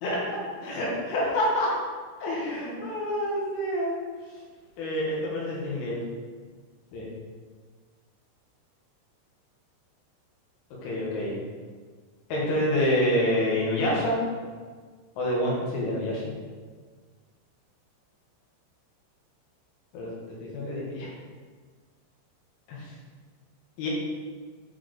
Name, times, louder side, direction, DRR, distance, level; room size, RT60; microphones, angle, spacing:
voice 1, 0.0-1.7 2.2-3.9 4.8-6.0 6.9-7.1 10.8-11.4 12.3-14.2 15.2-16.2 19.9-20.1 20.4-21.1 22.7-22.9 23.8-23.9, left 1 dB, 85° left, -5 dB, 3.8 m, -27 dB
8.1 x 4.2 x 3.3 m, 1.5 s
omnidirectional pair, 5.6 m